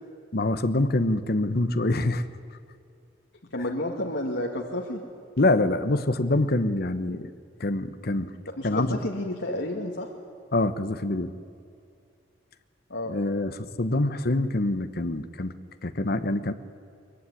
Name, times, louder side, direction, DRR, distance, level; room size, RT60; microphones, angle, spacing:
voice 1, 0.3-2.3 5.4-7.3 7.6-8.3 8.6-9.0 10.5-11.3 13.1-15.5 15.8-16.5, left 2 dB, 60° left, 10 dB, 1.1 m, -25 dB
voice 2, 3.5-5.0 8.6-10.1 12.9-13.2, left 1 dB, 80° left, 0 dB, 2.3 m, -31 dB
23.5 x 23.0 x 9.9 m, 2.4 s
head